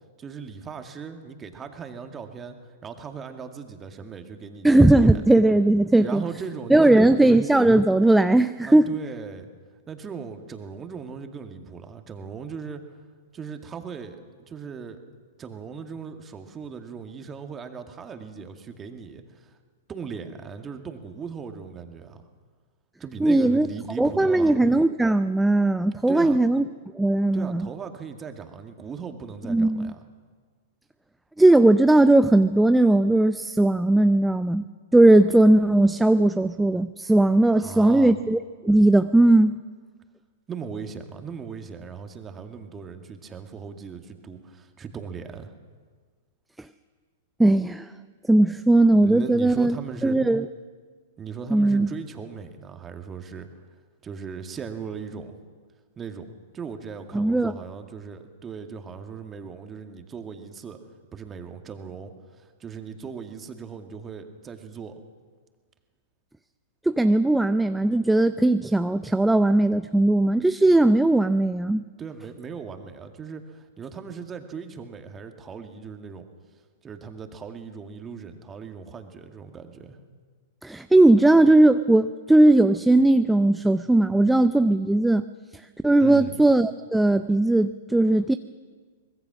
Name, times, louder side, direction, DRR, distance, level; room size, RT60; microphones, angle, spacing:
voice 1, 0.2-2.6 2.8-5.2 6.0-7.4 8.7-9.5 9.9-12.8 13.3-15.0 15.4-19.5 19.9-22.2 23.0-24.6 26.1-26.4 27.3-30.0 37.5-38.2 40.5-45.5 49.0-50.2 51.2-53.5 54.0-55.4 56.0-56.3 56.5-60.8 61.1-65.0 72.0-76.3 76.8-80.0 86.0-86.4, right 6 dB, 20° right, 6 dB, 2.1 m, -38 dB
voice 2, 4.6-6.2 6.7-8.9 23.2-23.7 24.0-26.6 26.9-27.7 29.5-29.9 31.4-34.6 34.9-39.6 47.4-47.9 48.3-49.8 50.0-50.5 51.5-51.9 57.1-57.5 66.9-71.9 80.6-85.3 85.8-88.3, right 2 dB, 5° right, 11 dB, 0.5 m, -18 dB
24.0 x 20.5 x 6.2 m, 1.5 s
hypercardioid pair, 110°, 0 cm